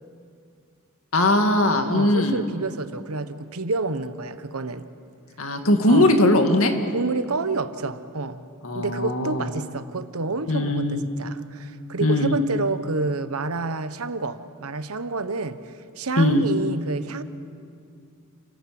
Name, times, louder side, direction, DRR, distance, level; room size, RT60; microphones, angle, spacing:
voice 1, 1.1-2.4 5.4-6.7 8.6-9.5 10.5-11.0 12.0-12.3 16.2-16.4, left 1 dB, 70° left, 5 dB, 2.2 m, -20 dB
voice 2, 1.8-4.9 5.9-6.1 6.9-8.4 8.7-15.6 16.0-17.2, right 3 dB, 85° right, 12 dB, 1.1 m, -29 dB
29.0 x 17.5 x 7.7 m, 2.4 s
head